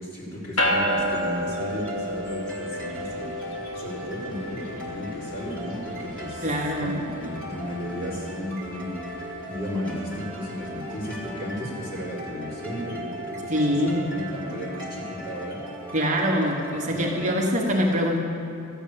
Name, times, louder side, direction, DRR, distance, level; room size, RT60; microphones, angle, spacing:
voice 1, 0.0-6.5 6.8-7.1 7.4-9.0 9.5-15.9 16.9-17.2, equal, 45° left, -6 dB, 3.6 m, -34 dB
sound 1, 0.6-12.2, equal, 75° left, 1.6 m, -33 dB
sound 2, 0.6-17.4, equal, 5° left, 1.9 m, -39 dB
voice 2, 6.4-7.4 13.5-14.1 15.9-18.2, equal, 35° right, -1 dB, 1.1 m, -24 dB
13.0 x 6.9 x 8.5 m, 2.7 s
head